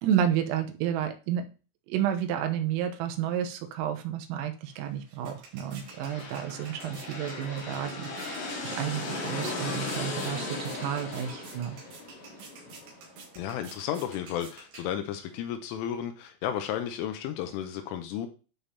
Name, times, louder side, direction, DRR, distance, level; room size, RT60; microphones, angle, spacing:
voice 1, 0.0-1.5 1.9-11.8, right 9 dB, 80° right, 6 dB, 3.6 m, -31 dB
sound 1, 4.6-15.4, right 4 dB, 65° right, 3.6 m, -50 dB
sound 2, 5.7-13.4, left 2 dB, 65° left, 5.1 m, -37 dB
voice 2, 13.4-18.3, left 10 dB, 85° left, 7 dB, 3.1 m, -33 dB
12.0 x 5.4 x 2.8 m, 0.34 s
omnidirectional pair, 6.0 m